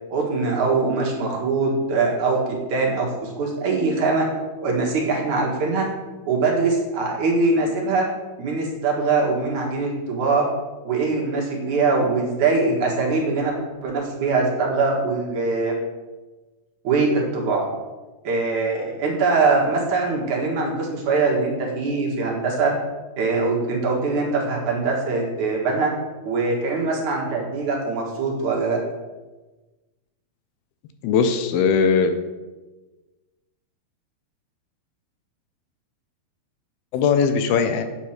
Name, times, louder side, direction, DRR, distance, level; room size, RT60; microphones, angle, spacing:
voice 1, 0.1-2.4 2.7-4.3 4.6-5.9 6.2-8.0 8.4-10.5 10.8-13.6 13.8-15.7 16.8-17.7 18.2-22.7 23.2-25.9 26.3-28.8, right 3 dB, 55° right, -1 dB, 2.7 m, -22 dB
voice 2, 31.0-32.1 36.9-37.8, left 6 dB, 80° left, 9 dB, 2.6 m, -19 dB
8.9 x 8.2 x 5.9 m, 1.2 s
omnidirectional pair, 4.5 m